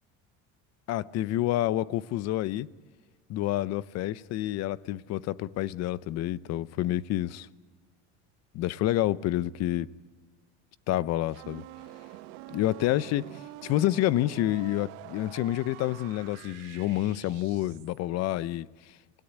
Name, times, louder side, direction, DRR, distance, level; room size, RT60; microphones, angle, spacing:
voice 1, 0.9-2.7 3.3-7.5 8.5-9.9 10.9-11.6 12.5-13.3 13.6-18.7, left 14 dB, 50° left, 0.7 m, -28 dB
sound 1, 11.3-18.0, right 16 dB, 85° right, 1.4 m, -46 dB
28.0 x 17.0 x 9.9 m
cardioid pair, 145°, 34 cm